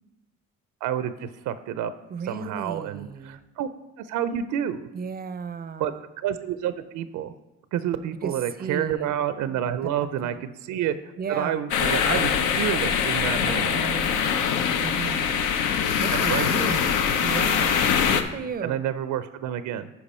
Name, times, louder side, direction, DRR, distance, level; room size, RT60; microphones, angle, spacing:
voice 1, 0.8-1.9 2.3-3.7 4.0-4.9 5.8-7.3 7.7-11.0 11.3-13.8 16.1-16.7 18.6-19.9, right 10 dB, 85° right, 12 dB, 0.5 m, -29 dB
voice 2, 2.1-3.4 4.9-6.0 8.2-9.1 9.8-10.4 11.2-11.6 13.5-14.4 14.8-15.4 16.0-16.9 17.2-17.8 18.1-18.8, right 6 dB, 30° right, 13 dB, 0.4 m, -35 dB
sound 1, 11.7-18.2, left 7 dB, 90° left, 0.6 m, -23 dB
10.5 x 4.7 x 4.2 m, 0.98 s
cardioid pair, 90°, 30 cm